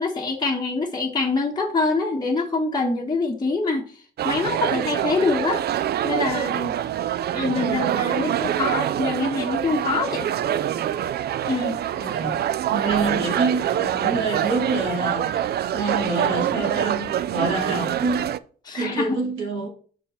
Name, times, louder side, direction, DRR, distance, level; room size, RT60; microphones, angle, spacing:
voice 1, 0.0-3.9 4.2-5.6 6.0-6.8 7.3-10.3 11.4-11.8 18.7-19.2, left 3 dB, 20° left, 1.1 m, -25 dB
sound 1, 4.2-18.4, right 11 dB, 55° right, 0.4 m, -25 dB
voice 2, 12.0-12.4 12.7-17.0 17.3-18.4 18.8-19.7, right 3 dB, 80° right, 2.2 m, -26 dB
6.5 x 4.5 x 4.3 m
cardioid pair, 90°, 20 cm